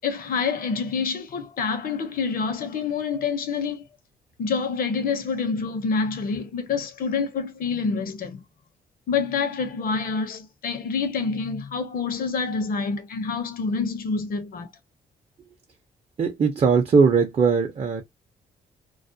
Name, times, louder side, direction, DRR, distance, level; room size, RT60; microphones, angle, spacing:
voice 1, 0.0-3.8 4.4-8.4 9.1-14.7, left 5 dB, 60° left, 0.7 m, -27 dB
voice 2, 16.2-18.0, right 5 dB, 40° right, 0.6 m, -19 dB
2.3 x 2.1 x 2.6 m
cardioid pair, 100°, 17 cm